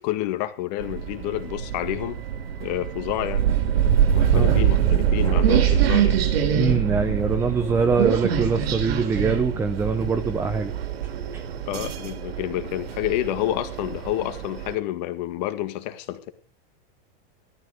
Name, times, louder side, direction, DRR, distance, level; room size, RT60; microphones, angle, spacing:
voice 1, 0.0-2.2 2.6-3.5 4.1-6.2 11.7-16.3, left 14 dB, 45° left, 10 dB, 1.9 m, -29 dB
sound 1, 0.8-14.8, right 9 dB, 85° right, 3.0 m, -24 dB
voice 2, 6.5-10.7 11.3-11.4, right 4 dB, 10° right, 8 dB, 0.7 m, -23 dB
15.0 x 13.0 x 5.0 m, 0.39 s
supercardioid pair, 170°, 29 cm